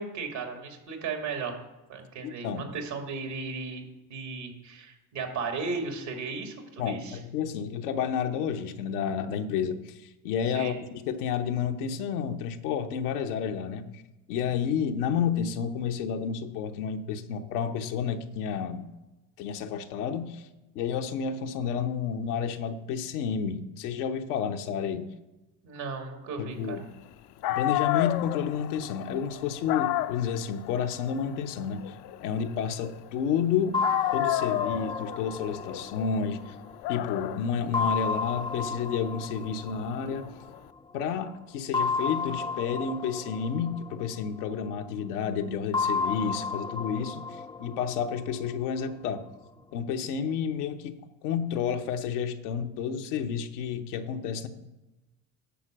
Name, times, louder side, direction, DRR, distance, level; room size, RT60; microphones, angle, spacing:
voice 1, 0.0-1.6 1.9-3.8 4.1-7.2 10.5-10.7 25.6-26.8, right 4 dB, 75° right, 3 dB, 2.4 m, -35 dB
voice 2, 2.2-2.7 6.8-14.0 14.3-18.9 19.4-20.4 20.7-25.1 26.4-26.8 27.5-31.8 32.2-33.8 34.1-36.5 36.9-40.3 40.9-47.3 47.6-49.3 49.7-51.0 51.2-54.5, left 7 dB, 85° left, 6 dB, 0.9 m, -30 dB
Dog, 27.1-27.2 27.4-33.4 33.8-40.6, left 15 dB, 60° left, 0.6 m, -32 dB
sound 1, 33.7-37.1 37.7-40.7 41.7-44.8 45.7-48.8, left 4 dB, 10° left, 0.4 m, -33 dB
10.5 x 4.4 x 7.6 m, 1.1 s
hypercardioid pair, 60°, 44 cm